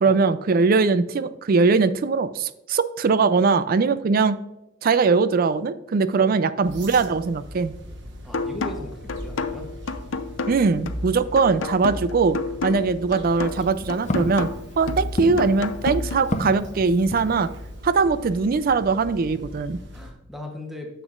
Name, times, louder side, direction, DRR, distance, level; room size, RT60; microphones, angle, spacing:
voice 1, 0.0-4.4 4.8-7.7 10.5-14.5 14.8-17.5 17.8-19.8, right 4 dB, 50° right, 14 dB, 0.4 m, -21 dB
sound 1, 6.6-20.1, equal, 65° right, 1.1 m, -41 dB
voice 2, 8.2-9.7 19.9-21.0, left 1 dB, ahead, 1 dB, 0.9 m, -38 dB
sound 2, 8.3-16.3, left 3 dB, 80° left, 0.6 m, -30 dB
Walk footsteps, 13.2-17.8, left 1 dB, 35° left, 0.6 m, -33 dB
9.9 x 7.1 x 2.5 m, 0.96 s
head